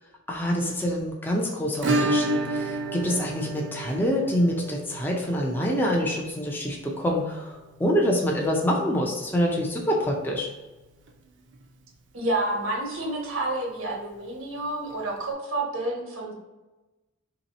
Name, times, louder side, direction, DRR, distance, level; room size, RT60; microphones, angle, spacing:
voice 1, 0.3-10.5, equal, 10° left, -1 dB, 0.4 m, -26 dB
Acoustic guitar / Strum, 1.8-10.4 10.7-10.8 11.1-11.2 11.5-11.6 13.7-13.8 14.9-15.0, right 2 dB, 60° right, 0.5 m, -32 dB
voice 2, 12.1-16.3, right 2 dB, 90° right, -1 dB, 1.1 m, -29 dB
3.0 x 2.8 x 4.0 m, 1.1 s
head